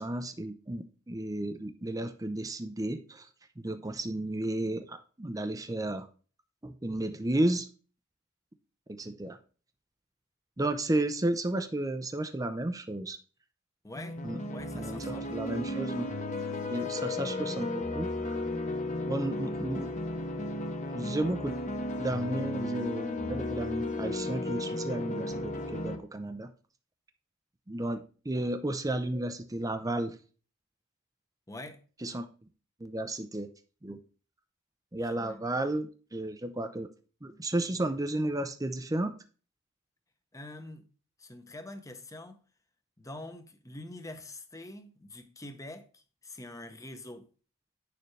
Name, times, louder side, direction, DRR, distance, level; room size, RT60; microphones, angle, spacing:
voice 1, 0.0-3.3 3.6-6.1 6.6-7.7 9.0-9.4 10.6-13.2 14.2-14.4 14.7-16.1 16.7-18.5 19.0-19.9 20.9-21.5 22.0-26.5 27.7-30.2 32.0-32.3 32.8-33.5 33.8-34.0 34.9-36.9 37.2-39.1, right 1 dB, 15° right, 0.6 m, -33 dB
voice 2, 13.8-14.2 14.5-15.7 31.5-31.8 35.0-35.4 40.3-40.8 41.2-42.4 43.0-47.3, left 1 dB, 15° left, 1.0 m, -45 dB
sound 1, 13.9-26.0, left 2 dB, 35° left, 1.2 m, -34 dB
10.0 x 6.8 x 3.3 m
head